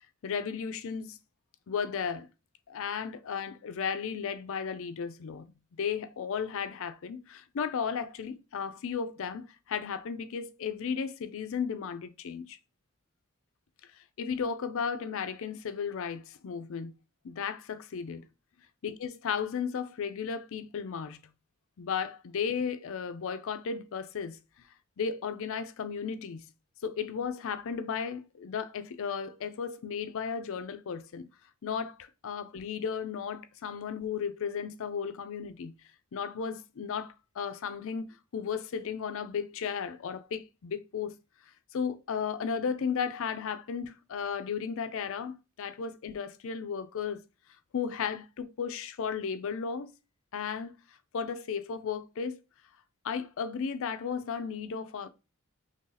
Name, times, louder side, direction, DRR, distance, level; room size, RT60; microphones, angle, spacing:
voice 1, 0.2-1.2 1.7-2.3 2.7-5.5 5.8-12.6 13.9-16.9 17.2-18.2 18.8-21.2 21.8-24.4 25.0-26.4 26.8-31.3 31.6-35.7 36.1-41.2 41.7-47.2 47.7-49.9 50.3-50.7 51.1-52.4 53.0-55.1, left 6 dB, 65° left, 0.4 m, -34 dB
3.2 x 2.8 x 3.8 m
head